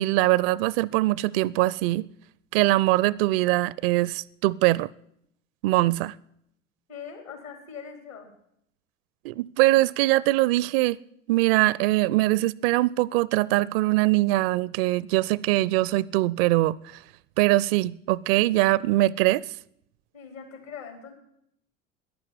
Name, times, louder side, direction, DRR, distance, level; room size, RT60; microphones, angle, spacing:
voice 1, 0.0-2.1 2.5-4.9 5.6-6.1 9.2-11.0 11.3-16.8 17.4-19.4, right 18 dB, 50° right, 0.5 m, -22 dB
voice 2, 6.9-8.3 20.1-21.1, left 6 dB, 75° left, 4.1 m, -41 dB
11.0 x 10.5 x 9.6 m
figure-of-eight pair, 70°, 40 cm